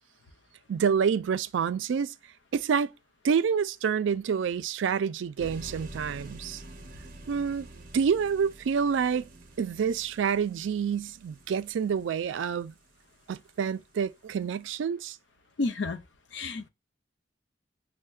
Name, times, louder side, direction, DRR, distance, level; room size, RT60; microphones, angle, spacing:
voice 1, 0.7-2.1 2.5-2.9 3.2-6.6 7.3-7.7 7.9-9.3 9.6-12.7 13.3-15.2, right 6 dB, 85° right, 0.3 m, -28 dB
sound 1, 5.4-13.4, right 2 dB, 50° right, 0.7 m, -47 dB
voice 2, 15.6-16.0 16.3-16.7, left 3 dB, 70° left, 0.6 m, -30 dB
6.3 x 2.1 x 2.2 m
head